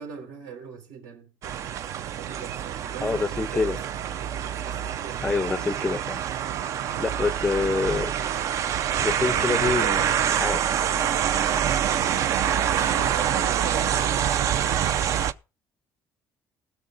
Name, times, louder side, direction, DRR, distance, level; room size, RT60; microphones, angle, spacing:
voice 1, 0.0-1.3 2.2-4.0 4.6-5.3 6.8-7.3 9.5-10.4 11.5-14.4, right 6 dB, 75° right, 3.7 m, -39 dB
sound 1, 1.4-15.3, right 9 dB, 50° right, 0.5 m, -26 dB
voice 2, 3.0-3.8 5.2-6.2 7.0-8.1 9.0-10.0 10.3-10.6, left 4 dB, 10° left, 0.4 m, -26 dB
19.5 x 6.5 x 3.9 m
cardioid pair, 160°, 7 cm